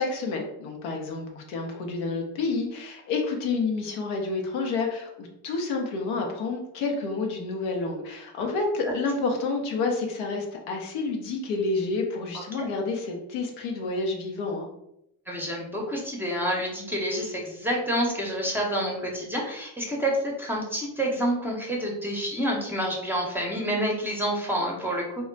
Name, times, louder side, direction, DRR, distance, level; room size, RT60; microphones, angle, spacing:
voice 1, 0.0-14.7, left 3 dB, 75° left, 1 dB, 0.8 m, -29 dB
voice 2, 12.3-12.7 15.3-25.2, equal, 5° right, -2 dB, 0.7 m, -28 dB
2.3 x 2.1 x 3.8 m, 0.81 s
supercardioid pair, 75°, 50 cm